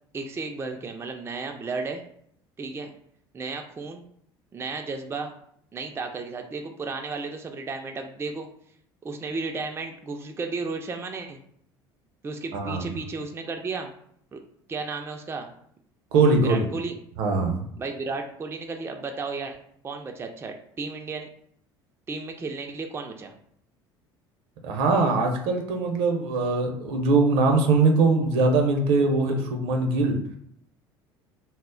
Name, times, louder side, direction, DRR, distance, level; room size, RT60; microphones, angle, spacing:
voice 1, 0.1-2.0 2.6-2.9 3.3-4.1 4.5-5.3 5.7-8.5 9.0-11.4 12.2-13.9 14.3-14.4 14.7-15.5 16.4-16.9 17.8-19.6 19.8-21.3 22.1-23.3, right 4 dB, 20° right, 4 dB, 0.3 m, -33 dB
voice 2, 12.5-12.9 16.1-16.7 17.2-17.6 24.6-30.2, right 3 dB, 65° right, 3 dB, 0.6 m, -22 dB
2.0 x 2.0 x 3.7 m, 0.67 s
hypercardioid pair, 65°, 13 cm